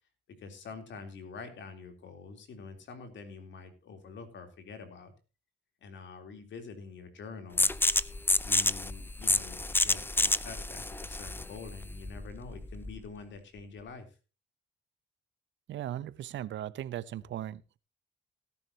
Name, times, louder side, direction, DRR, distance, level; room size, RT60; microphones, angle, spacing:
voice 1, 0.4-5.1 5.8-7.7 8.4-14.2, left 4 dB, 65° left, 7 dB, 3.5 m, -46 dB
sound 1, 7.6-13.1, left 2 dB, 10° left, 0.6 m, -29 dB
voice 2, 15.7-17.8, right 12 dB, 70° right, 18 dB, 0.7 m, -38 dB
17.5 x 10.5 x 2.9 m, 0.32 s
cardioid pair, 90°, 20 cm